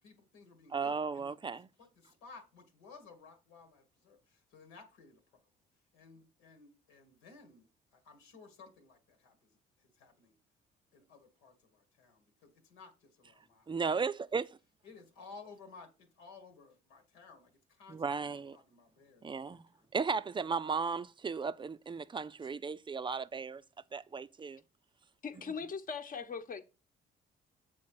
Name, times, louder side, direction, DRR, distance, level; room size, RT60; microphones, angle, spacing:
voice 1, 0.0-1.5 1.8-5.4 5.9-10.4 10.9-13.9 14.8-19.9 25.3-25.5, left 4 dB, 90° left, 1.6 m, -57 dB
voice 2, 0.7-1.7 13.7-14.5 17.9-18.6 19.2-19.6 19.9-23.6 23.9-24.6, right 5 dB, 25° right, 0.5 m, -35 dB
voice 3, 25.2-26.6, left 5 dB, 45° left, 1.1 m, -40 dB
7.2 x 4.2 x 4.7 m
supercardioid pair, 65°, 19 cm